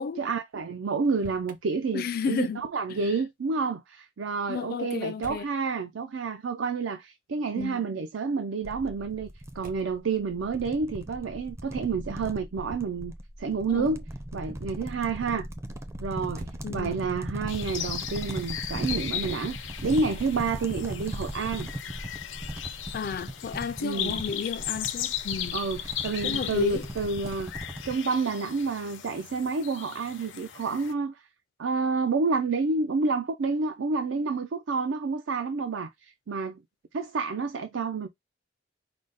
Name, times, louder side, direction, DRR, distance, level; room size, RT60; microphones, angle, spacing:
voice 1, 0.0-9.3 9.6-13.1 13.4-14.0 14.3-15.5 16.0-21.7 23.8-24.2 25.5-31.2 31.6-36.6 36.9-38.1, right 4 dB, 85° right, 0.5 m, -29 dB
Motor vehicle (road), 0.9-1.6 5.2-5.6 7.5-7.9 9.6-10.0 11.6-12.0 16.2-17.1, right 2 dB, 45° right, 0.8 m, -46 dB
voice 2, 1.9-2.6 4.5-5.4 7.6-7.9 13.7-13.9 16.6-17.0 22.9-25.6 26.2-26.8, left 5 dB, 50° left, 0.4 m, -32 dB
sound 1, 8.6-28.0, right 1 dB, 15° right, 0.4 m, -38 dB
sound 2, 17.5-30.9, left 10 dB, 85° left, 0.6 m, -37 dB
5.0 x 2.1 x 3.9 m
head